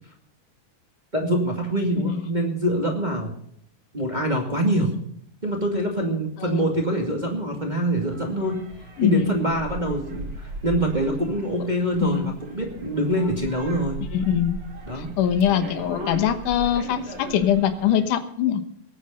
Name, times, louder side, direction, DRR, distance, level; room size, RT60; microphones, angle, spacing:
voice 1, 1.1-3.3 3.9-5.0 5.4-8.7 9.0-14.0 14.9-15.1, right 1 dB, 15° right, 1 dB, 2.2 m, -25 dB
sound 1, 8.0-18.1, right 2 dB, 45° right, 4.4 m, -38 dB
voice 2, 12.0-12.3 14.1-14.6 15.0-18.6, left 10 dB, 80° left, 9 dB, 2.7 m, -22 dB
20.0 x 8.9 x 5.6 m, 0.68 s
omnidirectional pair, 3.6 m